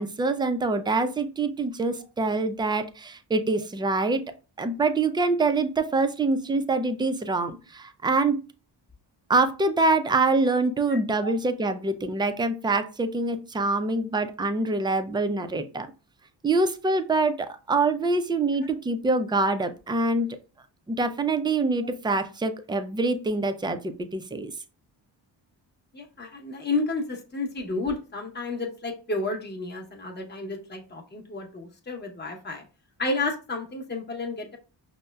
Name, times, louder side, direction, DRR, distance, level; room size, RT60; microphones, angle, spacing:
voice 1, 0.0-4.2 4.6-8.4 9.3-15.9 16.4-20.3 20.9-24.5, right 3 dB, 10° right, 8 dB, 0.3 m, -25 dB
voice 2, 25.9-32.6 33.0-34.6, left 3 dB, 20° left, 1 dB, 0.8 m, -31 dB
5.4 x 2.1 x 2.2 m, 0.34 s
cardioid pair, 55°, 47 cm